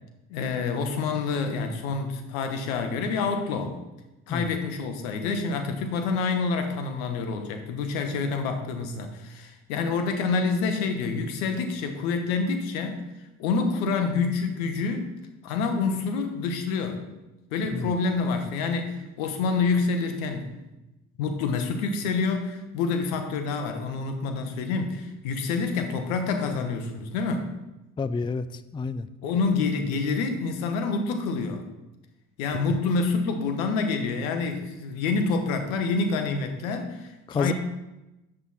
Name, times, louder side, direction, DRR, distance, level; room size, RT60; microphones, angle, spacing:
voice 1, 0.3-3.8 4.3-13.0 13.4-15.1 15.4-17.0 17.5-20.5 21.2-27.5 29.2-31.6 32.4-37.5, left 4 dB, 85° left, 6 dB, 1.2 m, -27 dB
voice 2, 17.6-17.9 28.0-29.1 32.5-32.8 37.3-37.5, left 4 dB, 15° left, 14 dB, 0.4 m, -30 dB
8.2 x 7.6 x 4.2 m, 0.99 s
hypercardioid pair, 65°, 39 cm